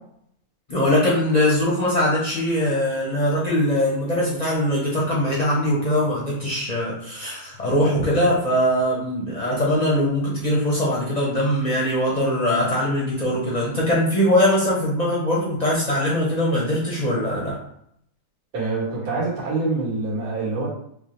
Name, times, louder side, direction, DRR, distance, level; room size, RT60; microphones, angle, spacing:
voice 1, 0.7-17.5, left 1 dB, 55° left, -6 dB, 0.4 m, -21 dB
voice 2, 18.5-20.7, right 3 dB, 85° right, -7 dB, 2.4 m, -25 dB
5.3 x 2.1 x 3.2 m, 0.70 s
omnidirectional pair, 2.2 m